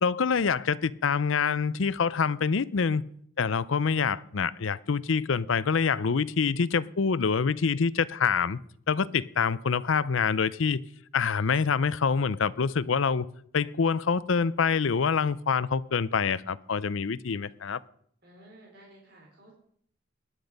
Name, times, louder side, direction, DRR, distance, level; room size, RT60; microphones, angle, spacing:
voice 1, 0.0-3.0 3.4-8.6 8.9-10.8 11.1-13.3 13.5-17.8, left 5 dB, 70° left, 0.5 m, -26 dB
voice 2, 18.2-19.5, right 1 dB, 50° right, 4.4 m, -53 dB
18.0 x 10.5 x 5.3 m
head